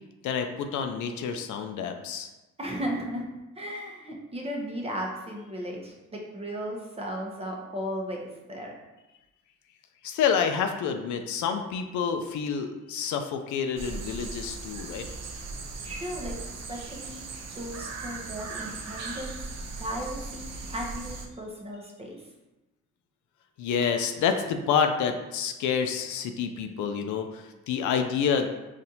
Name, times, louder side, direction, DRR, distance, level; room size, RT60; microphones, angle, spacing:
voice 1, 0.2-2.3 10.0-15.1 23.6-28.5, left 7 dB, 75° left, 6 dB, 0.5 m, -28 dB
voice 2, 2.6-3.2 3.5-8.7 15.8-17.3 17.5-19.4 19.7-22.2, equal, 20° right, -1 dB, 0.7 m, -36 dB
sound 1, 13.8-21.3, right 3 dB, 60° right, 0.6 m, -38 dB
4.1 x 2.5 x 2.7 m, 1.0 s
cardioid pair, 90°, 30 cm